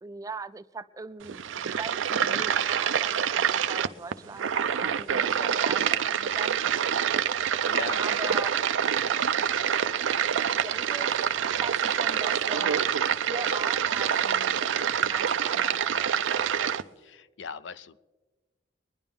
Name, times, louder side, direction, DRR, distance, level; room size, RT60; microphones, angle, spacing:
voice 1, 0.0-6.6 8.0-8.5 10.3-11.3 11.6-12.8 13.3-14.6 15.0-16.2, right 4 dB, 20° right, 13 dB, 0.3 m, -40 dB
sound 1, 1.2-16.8, right 8 dB, 85° right, 0.5 m, -26 dB
voice 2, 7.7-8.4 17.0-18.0, left 6 dB, 65° left, 14 dB, 0.5 m, -39 dB
24.0 x 10.5 x 3.6 m, 1.3 s
head